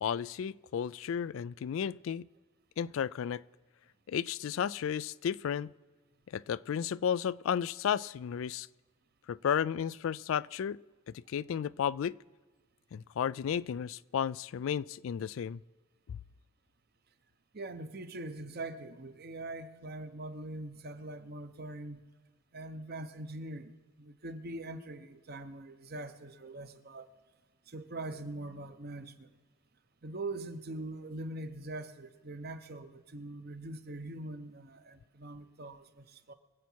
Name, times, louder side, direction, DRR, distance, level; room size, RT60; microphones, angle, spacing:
voice 1, 0.0-2.3 2.8-3.4 4.1-5.7 6.3-8.7 9.3-10.8 11.3-12.2 12.9-15.6 16.1-16.2, left 8 dB, 75° left, 0.3 m, -33 dB
voice 2, 17.5-22.0 22.5-23.7 24.0-27.1 27.7-29.3 30.0-36.3, right 2 dB, 50° right, 0.9 m, -42 dB
24.0 x 8.3 x 4.5 m
head